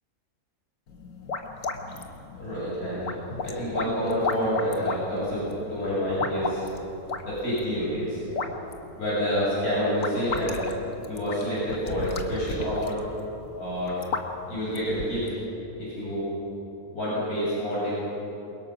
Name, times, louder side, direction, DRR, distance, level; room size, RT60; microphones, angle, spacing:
sound 1, 0.9-15.4, left 4 dB, 60° left, 1.7 m, -35 dB
voice 1, 2.4-6.7 7.2-8.2 9.0-10.6 11.1-13.1 13.6-14.0 14.5-15.3 15.8-16.3 16.9-17.9, equal, 80° left, -8 dB, 7.8 m, -28 dB
28.5 x 22.5 x 6.0 m, 2.9 s
omnidirectional pair, 1.5 m